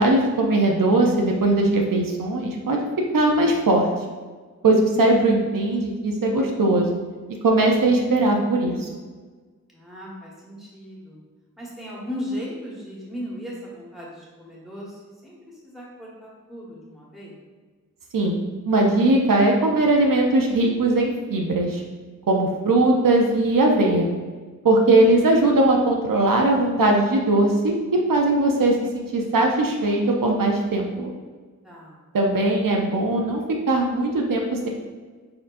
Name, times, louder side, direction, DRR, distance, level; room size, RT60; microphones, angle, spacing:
voice 1, 0.0-2.8 3.1-3.9 4.6-7.0 7.4-8.9 18.1-18.4 18.7-21.8 22.3-24.1 24.6-31.1 32.1-34.7, right 2 dB, 80° right, 1 dB, 0.6 m, -20 dB
voice 2, 9.7-11.2 11.6-17.4 31.6-32.0, equal, ahead, -5 dB, 1.4 m, -37 dB
4.3 x 3.9 x 2.5 m, 1.4 s
wide cardioid pair, 45°, 33 cm